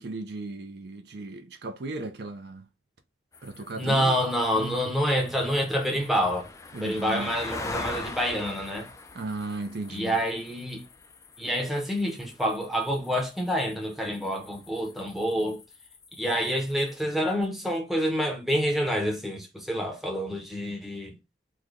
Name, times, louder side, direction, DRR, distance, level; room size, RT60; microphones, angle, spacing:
voice 1, 0.0-2.7 3.4-4.2 4.5-4.8 6.7-7.3 9.1-10.2, right 2 dB, 60° right, 0.5 m, -36 dB
sound 1, 3.3-17.0, left 3 dB, 15° left, 0.3 m, -43 dB
voice 2, 3.8-6.5 6.8-8.9 9.9-10.8 11.4-15.6 16.2-21.1, equal, ahead, 0.7 m, -27 dB
3.2 x 2.2 x 3.6 m
head